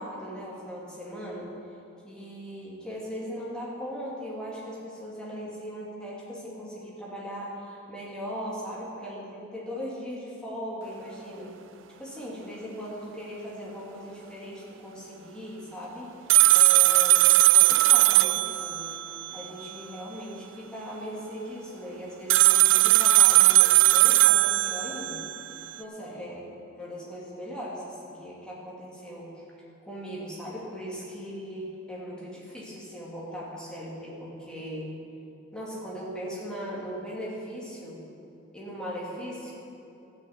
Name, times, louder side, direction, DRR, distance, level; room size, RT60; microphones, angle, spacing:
voice 1, 0.0-1.5 2.0-11.5 12.0-16.1 16.5-18.8 19.3-25.2 25.8-26.4 26.7-29.3 29.9-34.9 35.5-38.0 38.5-39.5, equal, 5° left, -6 dB, 2.5 m, -38 dB
sound 1, 16.3-19.7 22.3-25.7, right 17 dB, 60° right, 0.4 m, -19 dB
13.0 x 6.6 x 8.0 m, 2.8 s
head